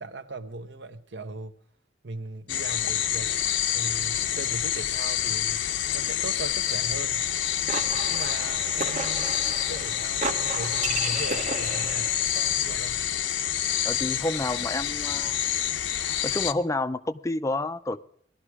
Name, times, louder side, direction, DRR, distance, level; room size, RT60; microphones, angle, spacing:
voice 1, 0.0-1.5 2.0-5.6 5.9-7.3 8.1-13.0, right 2 dB, 65° right, 1.0 m, -39 dB
sound 1, 2.5-16.5, left 10 dB, 85° left, 0.8 m, -27 dB
sound 2, 7.3-12.3, right 4 dB, 40° right, 0.8 m, -34 dB
voice 2, 13.8-15.4 16.2-18.0, left 2 dB, 15° left, 0.5 m, -29 dB
18.0 x 12.0 x 4.8 m
head